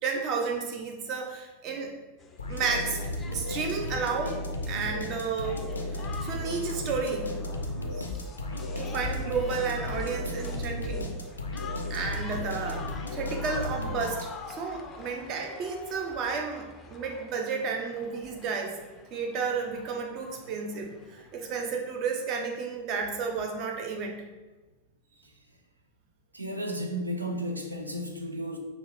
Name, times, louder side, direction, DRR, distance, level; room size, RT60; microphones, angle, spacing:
voice 1, 0.0-1.9 2.5-3.0 3.3-4.4 4.7-5.6 5.9-7.3 8.0-8.1 8.8-11.1 11.9-12.9 13.1-18.8 19.1-24.2, right 5 dB, 40° right, 2 dB, 0.6 m, -32 dB
sound 1, 2.2-21.8, left 3 dB, 20° left, 0.4 m, -46 dB
sound 2, 2.4-14.6, left 1 dB, 75° left, 0.5 m, -34 dB
voice 2, 26.3-28.6, equal, 80° right, 4 dB, 0.5 m, -33 dB
5.1 x 2.4 x 3.6 m, 1.2 s
figure-of-eight pair, 90°, 0 cm